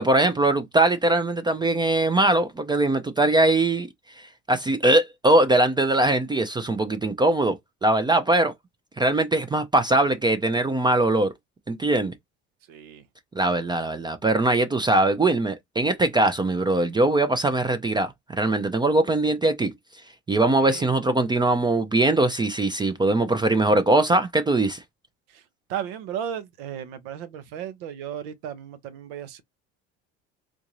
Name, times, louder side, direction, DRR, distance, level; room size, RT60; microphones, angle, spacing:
voice 1, 0.0-3.9 4.5-7.6 7.8-8.5 9.0-11.3 11.7-12.1 13.4-19.7 20.3-24.8, right 2 dB, 15° right, 0.4 m, -21 dB
voice 2, 12.7-13.0 20.6-20.9 25.7-29.4, right 9 dB, 80° right, 0.8 m, -34 dB
3.7 x 2.6 x 2.9 m
supercardioid pair, 95°, 30 cm